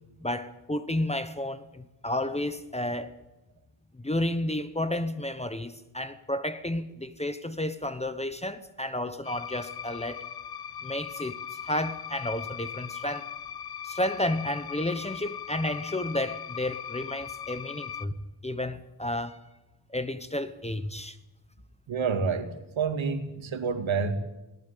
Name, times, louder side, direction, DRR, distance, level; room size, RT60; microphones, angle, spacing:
voice 1, 0.2-3.1 3.9-10.2 10.8-13.3 13.8-19.4 19.9-21.2, left 1 dB, 15° left, 1.0 m, -32 dB
sound 1, 9.2-18.1, left 8 dB, 50° left, 0.9 m, -39 dB
voice 2, 21.9-24.1, right 5 dB, 70° right, 2.4 m, -28 dB
20.0 x 18.0 x 8.5 m
wide cardioid pair, 140°, 48 cm